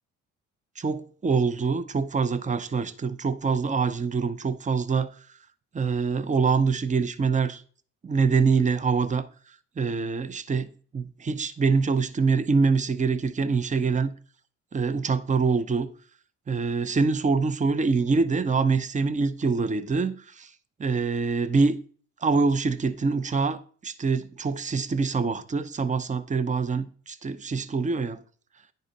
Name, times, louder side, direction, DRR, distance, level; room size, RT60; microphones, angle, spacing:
voice 1, 0.8-5.1 5.7-7.6 8.0-9.3 9.8-14.1 14.7-15.9 16.5-20.5 20.8-21.7 22.2-28.2, right 4 dB, 25° right, 0.7 m, -25 dB
10.5 x 4.0 x 5.3 m
cardioid pair, 90°, 30 cm